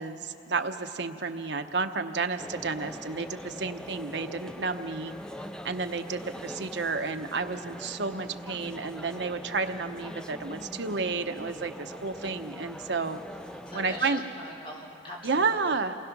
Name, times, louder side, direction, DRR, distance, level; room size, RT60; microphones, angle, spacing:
voice 1, 0.0-5.1 5.6-13.2 13.7-14.2 15.2-16.0, right 4 dB, 70° right, 7 dB, 0.9 m, -31 dB
sound 1, 2.4-14.0, equal, 5° left, 0.4 m, -42 dB
voice 2, 13.7-15.8, equal, 30° left, -3 dB, 3.5 m, -42 dB
28.5 x 20.0 x 6.1 m, 2.9 s
head